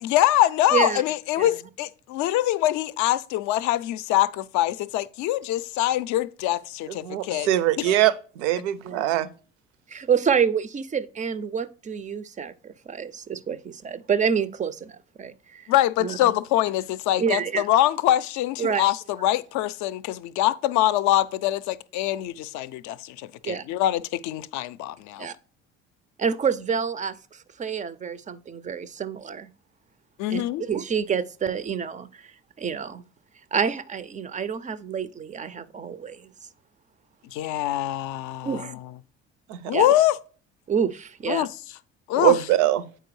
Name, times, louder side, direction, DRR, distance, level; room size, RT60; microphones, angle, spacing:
voice 1, 0.0-7.5 7.8-7.9 15.7-25.3 30.2-30.6 37.3-38.7 39.7-40.2 41.3-41.5 42.1-42.4, left 14 dB, 55° left, 0.5 m, -24 dB
voice 2, 0.7-1.0 1.4-1.5 8.8-9.1 9.9-15.7 16.0-16.3 17.2-17.7 18.6-18.9 23.4-23.6 25.2-25.3 26.2-29.5 30.3-32.3 32.6-33.0 33.5-36.3 38.4-38.7 39.7-39.9 40.7-41.5, right 7 dB, 20° right, 0.4 m, -28 dB
voice 3, 6.9-9.3 39.5-39.7 42.2-42.8, right 13 dB, 70° right, 0.5 m, -22 dB
7.7 x 4.5 x 3.1 m
hypercardioid pair, 55°, 35 cm